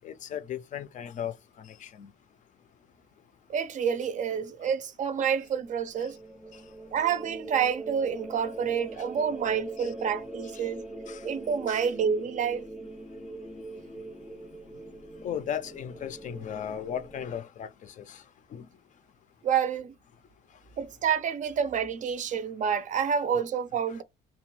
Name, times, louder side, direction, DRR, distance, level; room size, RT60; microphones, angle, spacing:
voice 1, 0.0-2.1 9.8-9.9 10.5-10.7 11.1-11.2 11.7-11.9 15.2-18.2 18.5-18.7 23.3-23.4, left 9 dB, 50° left, 0.4 m, -36 dB
voice 2, 3.5-6.2 6.9-10.8 11.2-12.6 19.4-19.9 20.8-24.0, right 7 dB, 45° right, 0.4 m, -28 dB
sound 1, 5.4-17.4, right 2 dB, 5° right, 0.6 m, -42 dB
2.8 x 2.2 x 3.1 m
cardioid pair, 110°, 17 cm